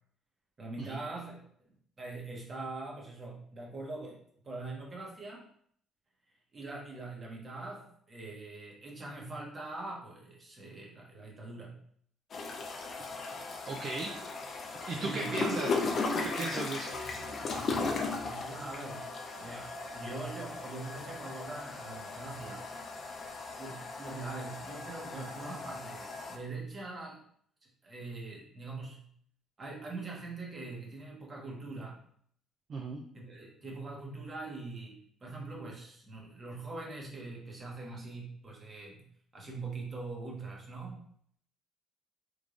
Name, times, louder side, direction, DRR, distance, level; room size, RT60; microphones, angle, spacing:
voice 1, 0.6-1.4 2.0-5.4 6.5-11.8 13.3-14.3 14.9-15.9 17.6-19.1 19.4-22.7 23.6-27.2 27.8-29.0 29.6-32.0 33.1-39.1 39.3-41.0, right 3 dB, 30° right, -2 dB, 1.1 m, -43 dB
sound 1, 12.3-26.4, left 3 dB, 40° left, 0.5 m, -37 dB
voice 2, 13.6-14.1 14.9-15.7 16.2-17.0 32.7-33.0, right 3 dB, 45° right, 2 dB, 0.4 m, -36 dB
3.6 x 3.2 x 2.5 m, 0.62 s
cardioid pair, 125°, 0 cm